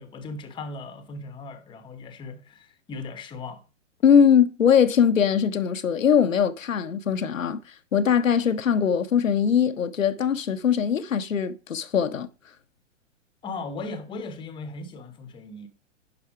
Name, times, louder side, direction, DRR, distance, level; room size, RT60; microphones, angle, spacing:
voice 1, 0.0-3.6 13.4-15.7, left 3 dB, 15° left, 0.8 m, -37 dB
voice 2, 4.0-7.6 7.9-12.3, left 7 dB, 90° left, 0.8 m, -21 dB
11.0 x 4.2 x 4.7 m
hypercardioid pair, 115°, 38 cm